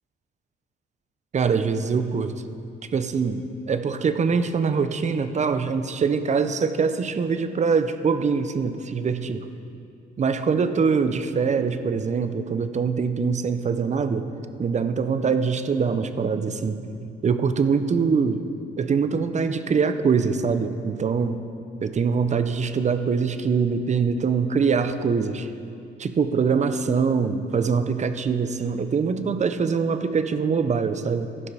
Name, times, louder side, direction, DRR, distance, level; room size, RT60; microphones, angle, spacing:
voice 1, 1.3-2.3 2.9-9.4 10.2-14.3 14.6-18.4 18.8-21.4 21.8-25.5 26.0-31.3, right 5 dB, 35° right, 10 dB, 0.6 m, -23 dB
15.0 x 5.7 x 4.8 m, 2.6 s
cardioid pair, 90°, 20 cm